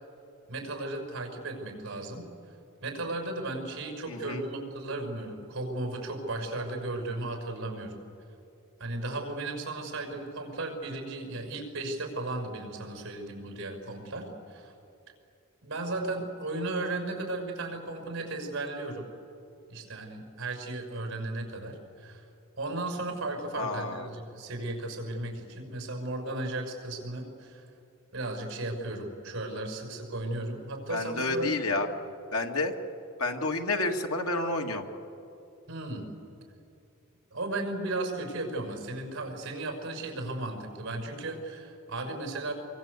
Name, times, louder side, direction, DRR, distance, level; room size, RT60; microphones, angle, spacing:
voice 1, 0.5-2.3 2.8-8.0 8.8-14.7 15.6-19.0 19.7-22.2 22.6-27.6 28.1-31.6 35.7-36.1 37.3-42.5, right 2 dB, 60° right, 4 dB, 5.9 m, -35 dB
voice 2, 4.1-4.5 23.5-24.1 30.9-31.9 32.3-32.7 33.2-34.9, left 2 dB, 90° left, 3 dB, 2.0 m, -30 dB
25.0 x 24.0 x 8.3 m, 2.8 s
head